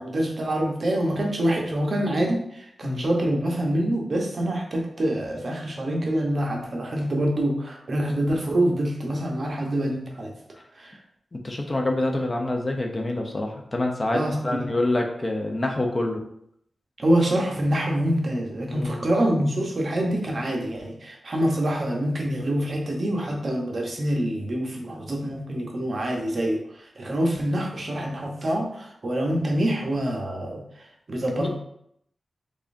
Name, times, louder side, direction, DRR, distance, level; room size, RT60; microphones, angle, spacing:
voice 1, 0.0-10.3 10.8-10.9 14.1-14.6 17.0-26.6 27.0-30.6 31.1-31.5, right 1 dB, 50° right, 0 dB, 0.8 m, -25 dB
voice 2, 11.3-16.2 18.7-19.1 31.4-31.5, left 2 dB, 30° left, 2 dB, 0.5 m, -26 dB
3.6 x 3.3 x 2.5 m, 0.73 s
wide cardioid pair, 95°, 0 cm